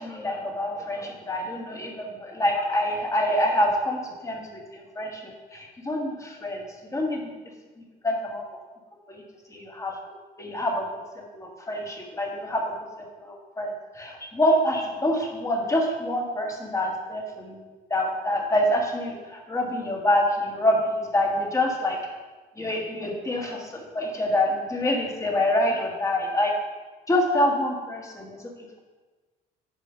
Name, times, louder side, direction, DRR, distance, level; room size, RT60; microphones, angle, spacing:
voice 1, 0.0-5.2 5.5-6.6 6.9-7.3 8.0-8.4 9.1-9.2 9.5-10.9 11.2-12.7 13.2-17.6 17.9-22.0 22.6-26.5 27.1-28.4, left 1 dB, 20° left, 0 dB, 1.5 m, -26 dB
6.4 x 5.2 x 5.5 m, 1.3 s
cardioid pair, 110°, 17 cm